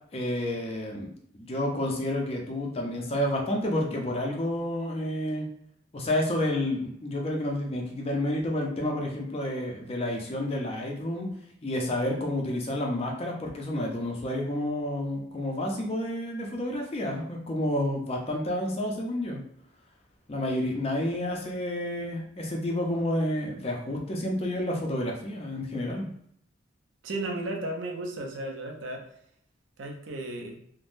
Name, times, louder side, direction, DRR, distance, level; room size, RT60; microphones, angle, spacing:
voice 1, 0.1-5.5 5.9-11.3 11.6-19.4 20.3-26.1, left 1 dB, 30° left, 0 dB, 0.5 m, -30 dB
voice 2, 27.0-29.0 29.8-30.6, right 2 dB, 75° right, 2 dB, 0.5 m, -34 dB
3.4 x 2.1 x 2.5 m, 0.69 s
head